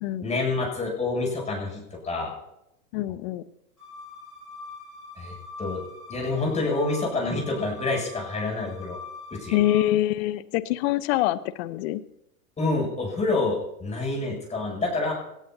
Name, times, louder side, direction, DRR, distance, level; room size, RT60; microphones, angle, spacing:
voice 1, 0.2-2.4 5.2-5.8 6.1-9.0 9.3-9.6 12.6-15.1, left 3 dB, 15° left, -1 dB, 8.0 m, -27 dB
voice 2, 2.9-3.4 9.5-12.0, left 14 dB, 45° left, 15 dB, 1.0 m, -25 dB
sound 1, 3.8-9.7, left 3 dB, 85° left, 6.5 m, -42 dB
22.0 x 17.5 x 2.8 m, 0.82 s
hypercardioid pair, 115°, 44 cm